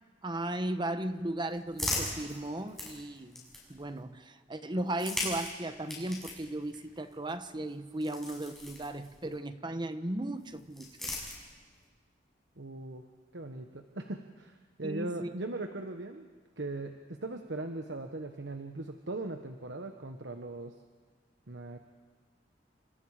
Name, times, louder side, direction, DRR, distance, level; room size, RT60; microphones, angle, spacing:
voice 1, 0.2-11.1 14.8-15.3, right 1 dB, 25° right, 10 dB, 1.1 m, -36 dB
sound 1, 0.9-4.0 4.8-9.4 10.4-11.9, left 2 dB, ahead, 6.8 m, -40 dB
voice 2, 12.6-13.0 13.3-16.3 16.6-20.7 21.5-21.8, right 2 dB, 80° right, 5 dB, 1.3 m, -39 dB
28.5 x 26.0 x 5.0 m, 1.5 s
head